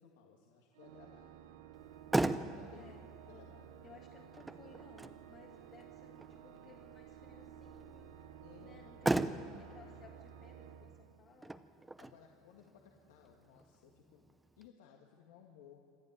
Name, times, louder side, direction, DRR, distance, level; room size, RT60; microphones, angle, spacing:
voice 1, 0.0-1.6 2.5-2.9 3.3-3.8 8.4-8.8 12.0-14.2 14.6-15.8, left 8 dB, 90° left, 1 dB, 1.9 m, -60 dB
Organ, 0.7-11.7, right 9 dB, 90° right, 1.2 m, -54 dB
Motor vehicle (road), 1.7-14.7, right 2 dB, 10° right, 0.7 m, -40 dB
voice 2, 2.7-3.4 3.8-11.7, left 5 dB, 35° left, 0 dB, 1.8 m, -60 dB
26.5 x 11.5 x 9.4 m, 2.8 s
supercardioid pair, 135°, 0 cm